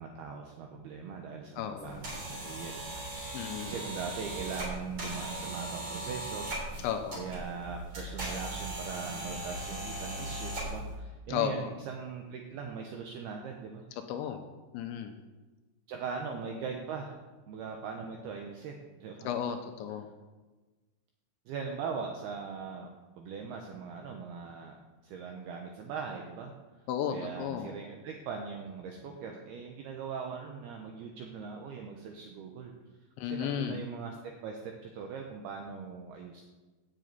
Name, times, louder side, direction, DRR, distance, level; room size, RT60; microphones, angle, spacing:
voice 1, 0.0-3.0 3.3-6.8 7.2-13.9 15.9-17.2 17.5-19.3 21.5-22.9 23.2-24.7 25.0-26.5 27.1-32.7 33.2-36.4, right 5 dB, 85° right, 2 dB, 2.3 m, -40 dB
voice 2, 1.6-2.0 3.3-3.8 6.8-7.2 11.3-11.7 14.1-14.4 14.7-15.2 19.2-20.1 26.9-27.8 33.2-33.8, left 9 dB, 85° left, 6 dB, 2.9 m, -34 dB
sound 1, 1.8-10.9, right 1 dB, 30° right, 3.1 m, -39 dB
7.6 x 7.5 x 8.1 m, 1.2 s
omnidirectional pair, 5.6 m